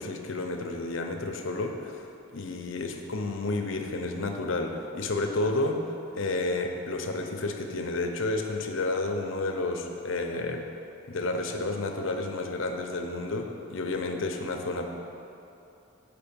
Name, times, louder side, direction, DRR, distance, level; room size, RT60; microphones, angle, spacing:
voice 1, 0.0-5.8 6.1-10.6 11.1-14.9, left 2 dB, 75° left, 3 dB, 0.7 m, -31 dB
6.9 x 5.2 x 6.9 m, 2.8 s
head